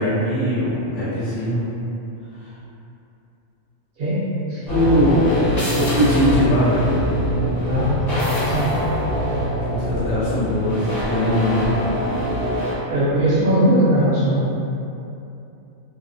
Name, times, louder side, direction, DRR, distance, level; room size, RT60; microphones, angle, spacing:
voice 1, 0.0-1.6 2.4-2.5 4.7-5.3 5.7-6.8 9.7-11.7, equal, 70° left, -11 dB, 1.1 m, -20 dB
sound 1, 4.7-12.7, left 1 dB, 50° left, 1.0 m, -23 dB
voice 2, 7.7-8.7 12.9-14.4, right 1 dB, 55° right, -9 dB, 0.8 m, -19 dB
2.6 x 2.1 x 2.6 m, 2.7 s
omnidirectional pair, 1.4 m